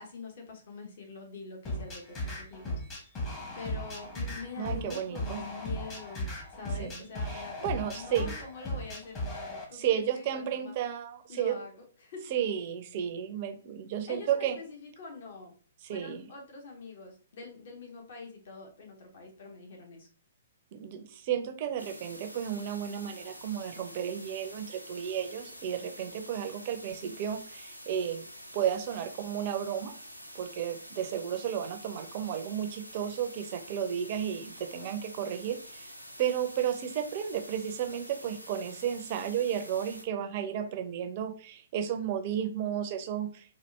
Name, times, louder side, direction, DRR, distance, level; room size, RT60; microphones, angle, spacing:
voice 1, 0.0-2.8 3.5-10.7 11.3-11.7 12.0-12.3 14.1-15.5 15.9-20.1, left 4 dB, 50° left, 1 dB, 1.2 m, -45 dB
sound 1, 1.6-9.6, left 1 dB, 25° left, 1.2 m, -37 dB
voice 2, 4.6-5.4 6.8-8.3 9.7-11.6 12.3-14.6 15.8-16.3 20.7-28.2 28.5-29.9 30.3-35.9 36.2-43.6, right 9 dB, 40° right, 7 dB, 0.6 m, -33 dB
sound 2, 21.8-40.0, equal, 90° left, 0.6 m, -47 dB
4.2 x 2.5 x 3.3 m, 0.44 s
figure-of-eight pair, 120°, 0 cm